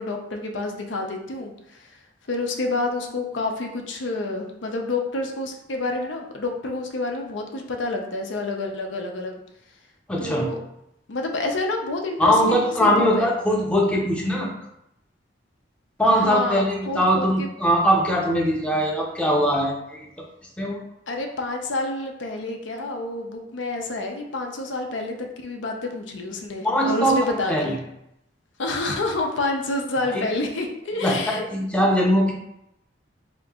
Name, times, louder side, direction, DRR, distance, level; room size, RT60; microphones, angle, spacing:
voice 1, 0.0-2.0 2.3-9.4 10.2-10.6 11.1-13.3 16.0-17.5 21.1-27.8 28.6-31.4, left 2 dB, 80° left, 3 dB, 0.6 m, -28 dB
voice 2, 10.1-10.5 12.2-14.5 16.0-20.1 20.6-20.8 26.6-27.8 30.1-30.2 31.0-32.3, equal, 5° left, -2 dB, 0.6 m, -21 dB
3.7 x 2.9 x 3.5 m, 0.81 s
head